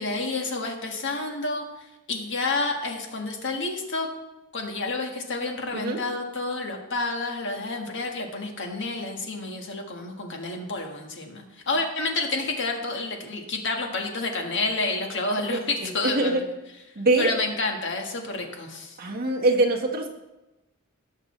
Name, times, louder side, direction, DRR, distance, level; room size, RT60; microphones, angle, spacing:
voice 1, 0.0-4.1 4.5-16.4 17.2-19.0, left 3 dB, 55° left, 2 dB, 1.5 m, -29 dB
voice 2, 17.0-17.3 19.0-20.1, right 2 dB, 45° right, 0 dB, 1.4 m, -23 dB
18.0 x 6.5 x 3.2 m, 1.0 s
head